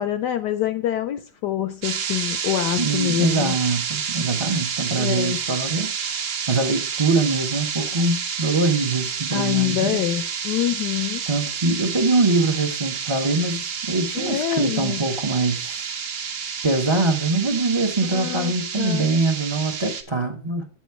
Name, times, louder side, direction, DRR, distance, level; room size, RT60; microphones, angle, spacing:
voice 1, 0.0-3.5 5.0-5.4 9.3-11.3 14.1-15.0 18.1-19.1, left 12 dB, 75° left, 1.0 m, -25 dB
sound 1, 1.8-20.0, right 7 dB, 65° right, 1.6 m, -29 dB
voice 2, 2.8-5.9 6.5-10.0 11.3-15.9 16.6-20.7, right 3 dB, 45° right, 0.3 m, -23 dB
8.3 x 6.2 x 4.5 m
omnidirectional pair, 2.2 m